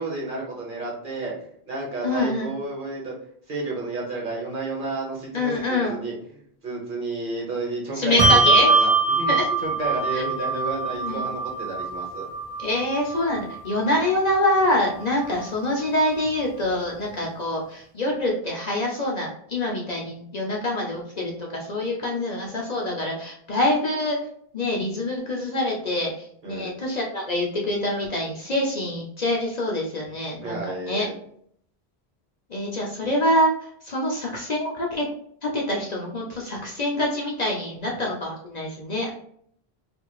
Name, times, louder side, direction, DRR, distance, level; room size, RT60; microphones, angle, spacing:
voice 1, 0.0-1.3 1.6-3.1 3.5-6.1 6.6-9.3 9.6-12.3 26.4-26.7 30.4-31.1, right 3 dB, 55° right, -3 dB, 1.3 m, -31 dB
voice 2, 2.0-2.5 5.3-6.0 7.9-8.7 9.3-9.6 10.1-10.2 11.0-11.3 12.6-24.2 24.5-31.1 32.5-35.1 35.4-39.1, left 1 dB, 45° left, -1 dB, 0.7 m, -25 dB
Bell, 8.2-15.0, right 3 dB, 30° right, 0.4 m, -23 dB
4.7 x 2.6 x 2.3 m, 0.64 s
omnidirectional pair, 1.1 m